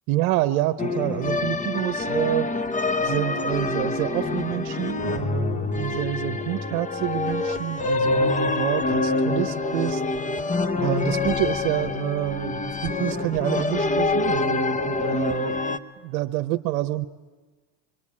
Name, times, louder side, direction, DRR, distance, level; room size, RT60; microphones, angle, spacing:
voice 1, 0.1-2.5 3.0-10.0 10.8-15.7 16.0-17.1, right 16 dB, 75° right, 9 dB, 0.9 m, -28 dB
sound 1, 0.8-15.8, left 3 dB, 20° left, 1.0 m, -26 dB
25.5 x 21.5 x 8.6 m, 1.3 s
supercardioid pair, 95°, 42 cm